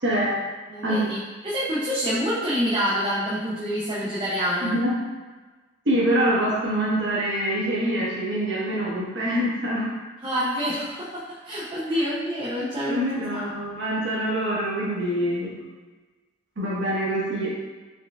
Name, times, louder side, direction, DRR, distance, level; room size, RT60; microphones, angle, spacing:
voice 1, 0.0-0.4 0.8-1.0 4.6-5.0 5.8-9.9 12.9-15.5 16.6-17.5, equal, 55° right, -6 dB, 1.1 m, -25 dB
voice 2, 0.7-4.8 10.2-13.6, equal, 25° right, -9 dB, 0.6 m, -27 dB
4.4 x 3.7 x 2.3 m, 1.3 s
head